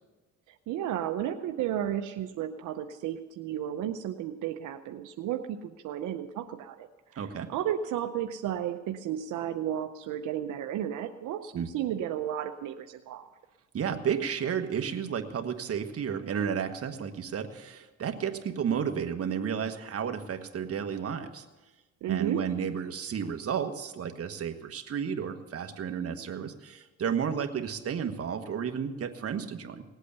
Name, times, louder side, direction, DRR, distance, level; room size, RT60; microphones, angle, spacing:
voice 1, 0.5-6.9 7.1-13.2 22.0-22.4, right 10 dB, 85° right, 6 dB, 0.7 m, -33 dB
voice 2, 7.2-7.5 11.5-11.7 13.7-21.4 22.1-29.8, right 7 dB, 50° right, 6 dB, 1.4 m, -32 dB
18.5 x 8.2 x 6.8 m, 1.2 s
cardioid pair, 90°, 30 cm